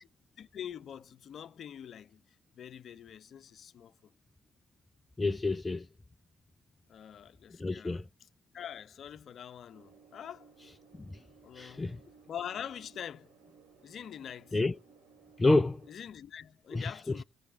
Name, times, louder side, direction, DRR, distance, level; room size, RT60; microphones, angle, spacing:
voice 1, 0.4-2.2 2.5-4.1 6.9-8.3 8.5-10.5 11.4-12.0 12.3-13.3 13.8-14.6 15.9-17.2, left 9 dB, 55° left, 0.9 m, -44 dB
voice 2, 5.2-5.9 7.6-8.0 11.6-12.0 14.5-14.7 15.4-15.8 16.7-16.8, left 2 dB, 20° left, 0.6 m, -28 dB
sound 1, 9.7-15.9, right 5 dB, 80° right, 3.6 m, -60 dB
17.5 x 6.5 x 4.2 m
hypercardioid pair, 55°, 0 cm